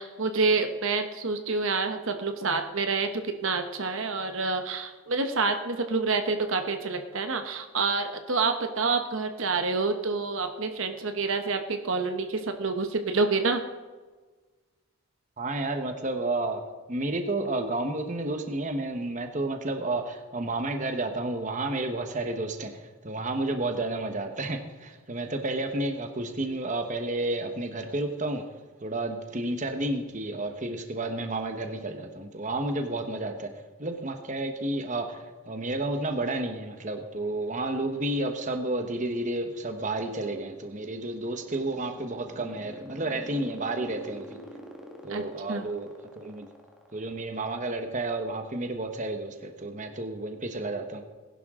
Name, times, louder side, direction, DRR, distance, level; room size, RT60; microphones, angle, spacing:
voice 1, 0.0-3.1 3.4-13.6 45.1-45.2 45.5-45.7, right 4 dB, 65° right, 6 dB, 1.0 m, -28 dB
voice 2, 15.4-16.6 16.9-28.5 28.8-33.5 33.8-44.4 45.0-46.5 46.9-51.0, right 2 dB, 35° right, 5 dB, 1.2 m, -31 dB
sound 1, 40.9-47.4, equal, ahead, 1.6 m, -45 dB
20.0 x 11.0 x 3.7 m, 1.3 s
head